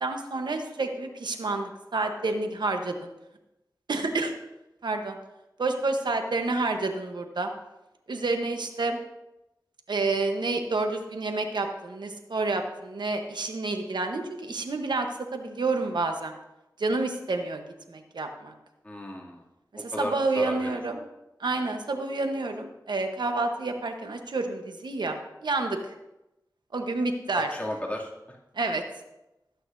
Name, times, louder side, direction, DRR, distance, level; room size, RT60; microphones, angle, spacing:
voice 1, 0.0-3.1 3.9-4.3 4.8-5.2 5.6-7.5 8.1-9.0 9.9-16.3 16.8-18.5 19.7-21.0 21.4-25.2 25.4-25.9 26.7-27.5 28.5-28.8, right 3 dB, 80° right, 5 dB, 1.0 m, -29 dB
voice 2, 18.8-19.4 19.8-20.8 27.3-28.1, left 1 dB, 20° left, -3 dB, 2.6 m, -34 dB
15.0 x 8.4 x 2.7 m, 0.94 s
cardioid pair, 45°, 8 cm